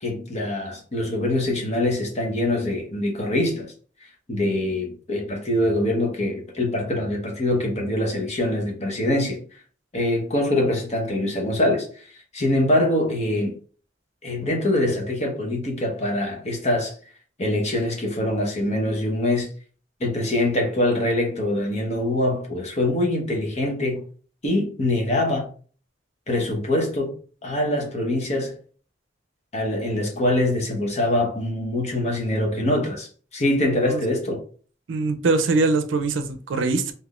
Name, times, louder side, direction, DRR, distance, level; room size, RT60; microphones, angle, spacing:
voice 1, 0.0-3.7 4.3-9.4 9.9-12.0 12.3-13.5 14.2-16.9 17.4-19.5 20.0-24.0 24.4-25.5 26.3-27.1 27.4-28.5 29.5-34.4, left 1 dB, 35° left, 0.9 m, -24 dB
voice 2, 34.9-36.9, right 3 dB, 85° right, 0.5 m, -22 dB
3.5 x 2.7 x 2.4 m
head